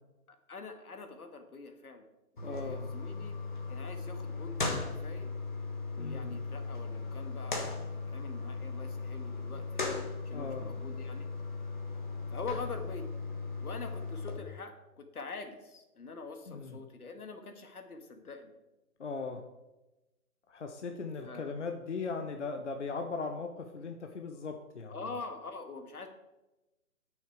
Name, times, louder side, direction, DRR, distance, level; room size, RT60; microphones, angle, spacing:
voice 1, 0.3-2.0 2.4-3.4 3.7-5.3 6.0-9.9 10.2-11.3 12.3-13.0 13.6-18.5 21.2-21.5 24.9-26.1, left 4 dB, 80° left, 6 dB, 1.7 m, -44 dB
voice 2, 2.4-2.9 6.0-6.3 10.3-10.7 16.5-16.8 19.0-19.4 20.5-25.0, left 4 dB, 55° left, 5 dB, 0.8 m, -38 dB
sound 1, 2.4-14.4, left 3 dB, 35° left, 1.2 m, -37 dB
8.9 x 6.4 x 5.0 m, 1.0 s
hypercardioid pair, 175°, 43 cm